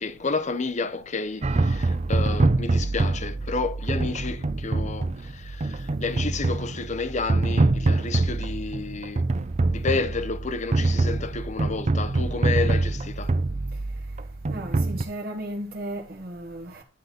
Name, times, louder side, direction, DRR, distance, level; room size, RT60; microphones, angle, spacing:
voice 1, 0.0-9.2 9.7-13.3, left 4 dB, 40° left, 0.7 m, -30 dB
sound 1, 1.4-15.0, right 2 dB, 35° right, 0.5 m, -25 dB
voice 2, 14.5-16.8, right 1 dB, 55° right, 1.3 m, -35 dB
10.0 x 3.9 x 6.8 m
head